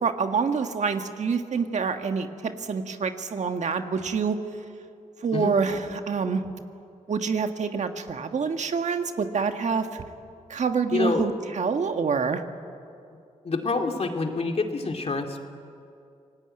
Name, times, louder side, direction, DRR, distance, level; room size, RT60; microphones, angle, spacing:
voice 1, 0.0-4.4 5.2-6.4 7.1-10.0 10.5-12.4, right 5 dB, 60° right, 6 dB, 1.6 m, -26 dB
voice 2, 10.9-11.3 13.4-15.4, left 3 dB, 50° left, 4 dB, 2.6 m, -27 dB
28.0 x 19.0 x 9.0 m, 2.5 s
cardioid pair, 75°, 13 cm